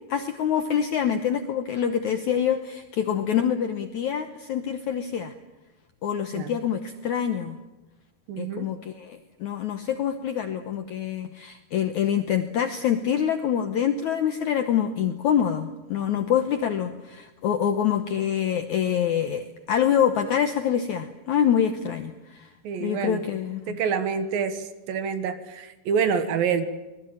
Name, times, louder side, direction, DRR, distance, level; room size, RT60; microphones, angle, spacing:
voice 1, 0.1-5.3 6.0-7.6 8.4-22.5 22.8-23.8, left 9 dB, 75° left, 8 dB, 1.8 m, -26 dB
voice 2, 8.3-8.7 22.6-23.2 23.7-24.6 24.9-26.6, right 6 dB, 65° right, 10 dB, 2.9 m, -26 dB
25.0 x 20.5 x 8.8 m, 1.1 s
omnidirectional pair, 4.7 m